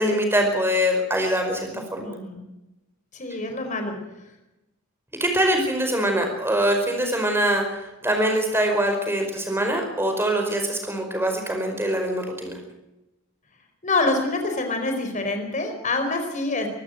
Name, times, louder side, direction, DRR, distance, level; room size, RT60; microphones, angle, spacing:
voice 1, 0.0-2.2 5.2-12.6, equal, 10° right, 4 dB, 4.9 m, -23 dB
voice 2, 1.7-2.4 3.1-3.9 13.8-16.7, left 2 dB, 35° left, 5 dB, 4.6 m, -26 dB
25.0 x 13.5 x 7.9 m, 0.95 s
head